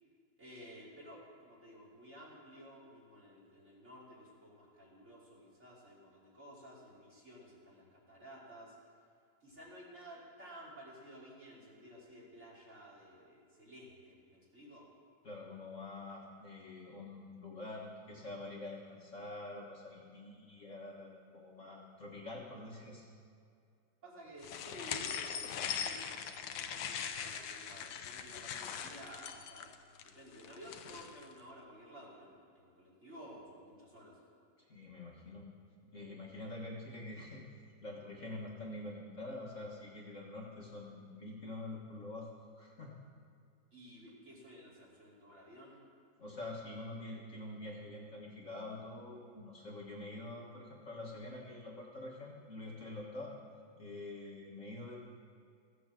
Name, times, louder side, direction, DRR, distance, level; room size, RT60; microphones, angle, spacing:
voice 1, 0.4-8.7 9.4-14.9 24.0-29.7 30.0-34.2 43.7-45.8, equal, 35° right, -6 dB, 3.5 m, -54 dB
voice 2, 15.2-23.1 34.7-35.5 35.9-37.4 37.8-42.3 42.6-42.9 46.2-53.3 53.8-55.0, left 2 dB, 40° left, -3 dB, 1.6 m, -46 dB
sound 1, 24.4-31.3, left 8 dB, 85° left, 1.5 m, -41 dB
15.5 x 7.9 x 7.5 m, 2.4 s
omnidirectional pair, 2.1 m